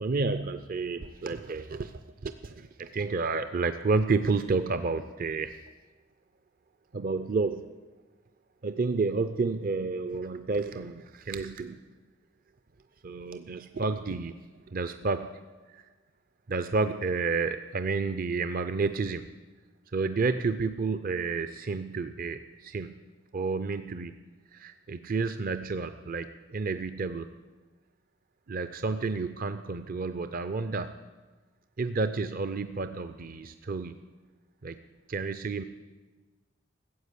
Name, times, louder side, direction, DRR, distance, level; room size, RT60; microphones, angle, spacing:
voice 1, 0.0-1.9 2.2-5.6 6.9-7.6 8.6-11.8 13.0-14.3 14.7-15.3 15.7-15.8 16.5-19.3 19.9-22.9 23.3-24.1 24.5-27.3 28.5-30.9 31.8-34.0 34.6-34.8 35.1-35.6, right 4 dB, 50° right, 11 dB, 0.5 m, -30 dB
14.5 x 8.1 x 8.3 m, 1.3 s
head